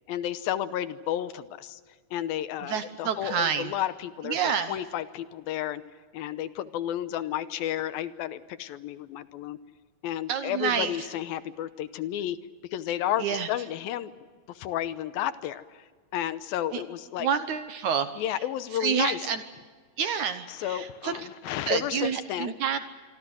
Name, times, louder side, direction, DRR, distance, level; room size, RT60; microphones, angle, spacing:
voice 1, 0.1-1.8 2.1-5.8 6.1-9.6 10.0-12.4 12.7-14.1 14.5-15.8 16.1-17.3 18.2-19.2 20.5-22.8, left 11 dB, 80° left, 13 dB, 2.6 m, -32 dB
voice 2, 2.6-3.7 4.3-4.8 10.3-11.0 13.2-13.5 16.7-16.8 17.2-18.1 18.8-19.4 20.0-21.1 21.7-22.8, right 7 dB, 65° right, 10 dB, 2.0 m, -28 dB
26.0 x 25.0 x 6.3 m, 1.5 s
omnidirectional pair, 4.3 m